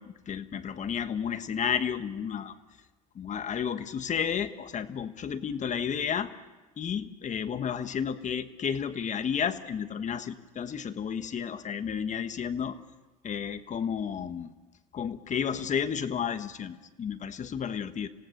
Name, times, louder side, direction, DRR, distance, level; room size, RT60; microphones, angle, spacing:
voice 1, 0.0-2.5 3.1-6.3 6.8-12.8 13.2-14.5 14.9-18.1, left 7 dB, 40° left, 10 dB, 1.3 m, -32 dB
27.5 x 16.5 x 6.6 m, 1.2 s
supercardioid pair, 85°, 19 cm